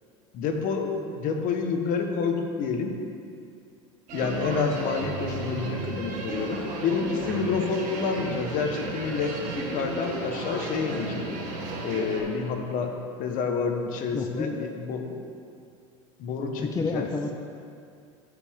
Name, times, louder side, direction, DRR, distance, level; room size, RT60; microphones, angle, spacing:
voice 1, 0.3-3.0 4.1-11.3 11.8-15.1 16.2-17.2, left 5 dB, 55° left, 4 dB, 1.0 m, -28 dB
sound 1, 4.1-12.2, right 3 dB, 55° right, 1.6 m, -34 dB
voice 2, 14.1-14.6 16.6-17.3, left 4 dB, 20° left, 4 dB, 0.5 m, -30 dB
13.0 x 4.9 x 3.6 m, 2.4 s
supercardioid pair, 100°, 17 cm